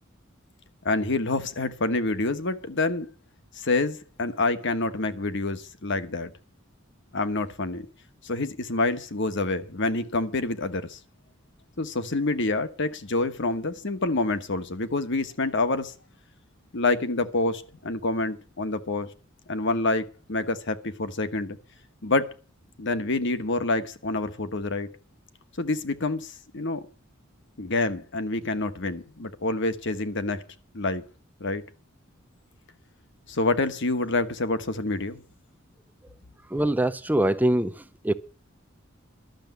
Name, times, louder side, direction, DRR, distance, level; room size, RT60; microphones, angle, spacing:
voice 1, 0.8-3.1 3.5-6.3 7.1-7.9 8.2-11.0 11.8-15.9 16.7-19.1 19.5-21.6 22.0-22.3 22.8-24.9 25.6-26.9 27.6-30.4 30.7-31.0 31.4-31.6 33.3-35.2, left 2 dB, 60° left, 1.3 m, -27 dB
voice 2, 36.5-37.7 38.0-38.1, right 1 dB, 10° right, 0.6 m, -23 dB
12.0 x 7.0 x 9.0 m
head